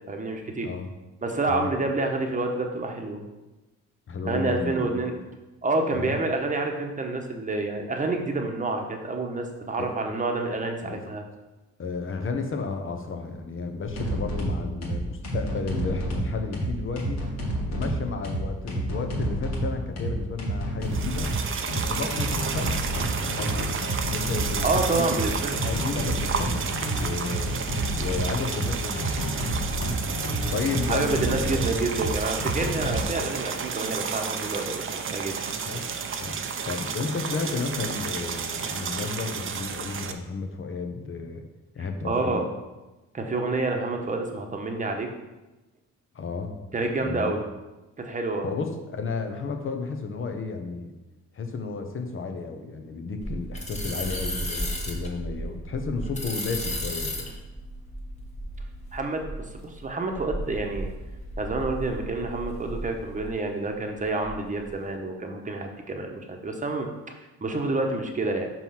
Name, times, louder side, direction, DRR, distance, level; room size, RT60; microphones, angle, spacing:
voice 1, 0.1-0.7 1.2-3.2 4.3-5.2 5.6-11.2 24.6-25.6 30.9-35.5 42.0-42.5 43.1-45.1 46.7-47.4 48.0-48.4 58.9-60.9 61.4-68.5, right 2 dB, 25° right, 3 dB, 1.1 m, -28 dB
voice 2, 4.1-5.2 5.9-6.2 9.8-9.9 10.8-11.0 11.8-17.2 17.7-21.3 21.7-23.7 24.0-26.7 26.9-27.6 27.9-29.3 30.5-31.7 33.1-33.3 35.6-35.9 36.2-41.4 41.7-42.4 46.1-46.6 47.0-47.3 48.4-50.9 51.3-57.3, left 4 dB, 45° left, 5 dB, 1.1 m, -32 dB
sound 1, 13.8-33.0, right 1 dB, 60° left, 1.9 m, -29 dB
sound 2, 20.8-40.1, right 6 dB, 45° right, 0.7 m, -32 dB
sound 3, 53.2-63.4 63.7-64.7, equal, 25° left, 1.6 m, -34 dB
5.4 x 4.6 x 5.8 m, 1.1 s
cardioid pair, 90°, 30 cm